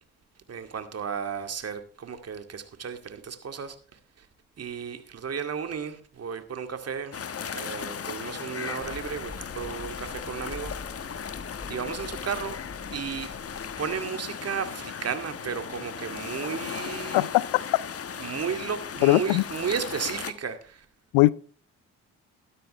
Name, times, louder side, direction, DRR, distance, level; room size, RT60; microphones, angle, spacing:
voice 1, 0.5-4.3 4.6-10.7 11.7-12.6 12.9-13.3 13.8-17.3 18.2-20.9, right 7 dB, 50° right, 2.2 m, -34 dB
sound 1, 7.1-20.3, left 7 dB, 45° left, 1.3 m, -37 dB
sound 2, 8.8-14.0, left 2 dB, 20° left, 2.5 m, -45 dB
voice 2, 17.1-17.6 19.0-19.4 21.1-21.3, left 20 dB, 85° left, 0.6 m, -20 dB
14.0 x 12.5 x 3.2 m
hypercardioid pair, 55°, 33 cm